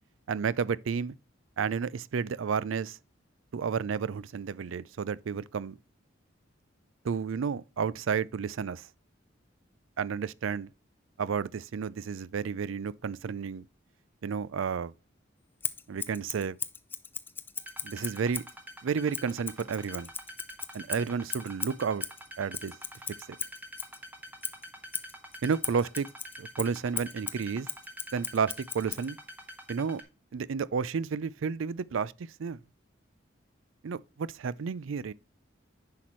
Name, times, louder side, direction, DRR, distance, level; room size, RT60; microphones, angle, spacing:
voice 1, 0.3-1.1 1.6-3.0 3.5-5.8 7.0-8.9 10.0-10.7 11.2-13.6 14.2-14.9 15.9-16.6 17.8-18.4 18.8-20.1 20.7-22.0 22.4-22.7 25.4-26.1 26.4-27.7 28.1-29.2 29.7-30.0 30.3-32.1 32.4-32.6 33.8-35.1, right 6 dB, 85° right, 0.4 m, -31 dB
Scissors, 15.6-18.6 19.1-24.0 24.4-29.1, left 5 dB, 10° left, 0.4 m, -38 dB
sound 1, 17.6-30.0, equal, 10° right, 1.3 m, -46 dB
10.0 x 5.8 x 3.1 m
head